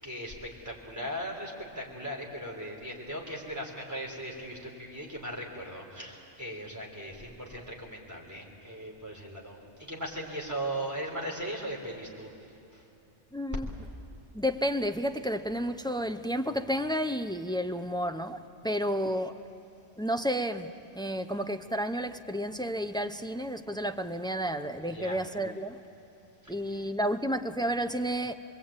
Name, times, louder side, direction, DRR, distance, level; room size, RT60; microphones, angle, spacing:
voice 1, 0.0-12.3 12.7-12.8 24.9-25.2, right 1 dB, 15° right, 3.9 m, -38 dB
voice 2, 13.3-13.7 14.3-19.4 20.0-25.8 26.5-28.3, equal, 5° left, 0.4 m, -31 dB
27.0 x 21.5 x 8.9 m
omnidirectional pair, 1.2 m